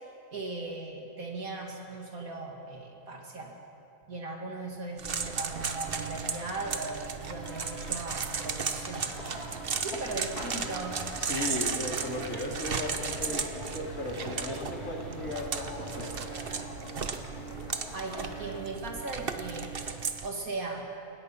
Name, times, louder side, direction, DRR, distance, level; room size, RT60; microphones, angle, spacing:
voice 1, 0.3-3.6 4.1-9.1 9.7-11.1 17.9-19.7 20.2-20.9, right 3 dB, 70° right, 1 dB, 2.5 m, -38 dB
sound 1, 5.0-20.3, right 5 dB, 40° right, 1.1 m, -35 dB
sound 2, 5.1-16.6, equal, ahead, 6.1 m, -47 dB
sound 3, 9.2-18.7, left 2 dB, 85° left, 2.7 m, -45 dB
voice 2, 11.2-16.2, left 1 dB, 60° left, 0 dB, 2.8 m, -36 dB
29.5 x 17.0 x 5.6 m, 2.9 s
omnidirectional pair, 1.6 m